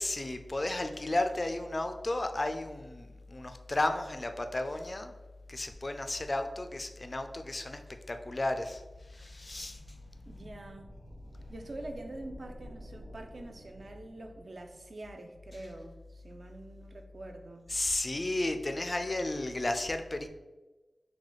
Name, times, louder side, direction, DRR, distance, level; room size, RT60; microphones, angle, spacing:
voice 1, 0.0-5.1 5.5-7.8 8.1-8.8 9.1-9.8 17.7-20.3, left 2 dB, 40° left, 7 dB, 0.3 m, -33 dB
sound 1, 8.3-14.6, equal, 40° right, 1.0 m, -52 dB
voice 2, 10.3-10.9 11.5-17.6, right 1 dB, 60° right, 4 dB, 0.4 m, -45 dB
4.0 x 2.2 x 3.1 m, 1.1 s
wide cardioid pair, 60°, 0 cm